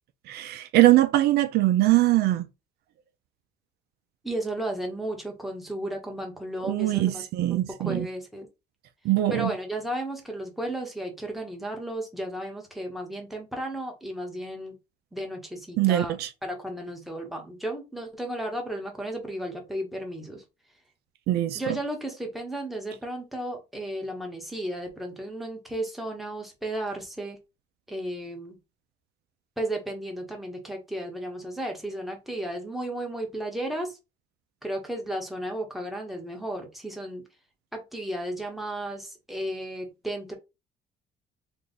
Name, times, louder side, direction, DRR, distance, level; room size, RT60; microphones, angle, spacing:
voice 1, 0.3-2.5 6.6-8.1 9.0-9.5 15.8-16.3 21.3-21.8, right 15 dB, 70° right, 0.5 m, -22 dB
voice 2, 4.2-7.2 7.5-8.5 9.3-14.8 15.1-20.4 21.5-27.4 27.9-28.6 29.6-34.0 34.6-37.3 37.7-40.3, right 1 dB, ahead, 1.2 m, -34 dB
3.4 x 2.4 x 4.1 m
cardioid pair, 110°, 17 cm